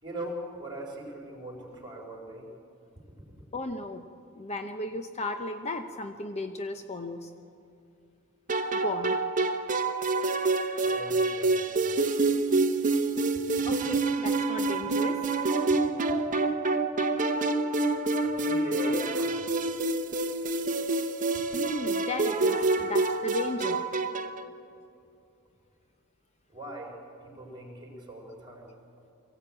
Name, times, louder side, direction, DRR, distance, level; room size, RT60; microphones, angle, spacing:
voice 1, 0.0-2.5 10.8-11.9 18.2-19.7 22.7-22.8 26.5-28.7, right 1 dB, 20° right, 0 dB, 4.4 m, -40 dB
voice 2, 3.5-4.1 4.3-7.3 8.7-9.2 13.7-15.3 21.5-23.9, left 1 dB, 30° left, 6 dB, 0.7 m, -35 dB
sound 1, 8.5-24.4, right 3 dB, 35° right, 0.9 m, -27 dB
23.5 x 16.0 x 8.8 m, 2.6 s
head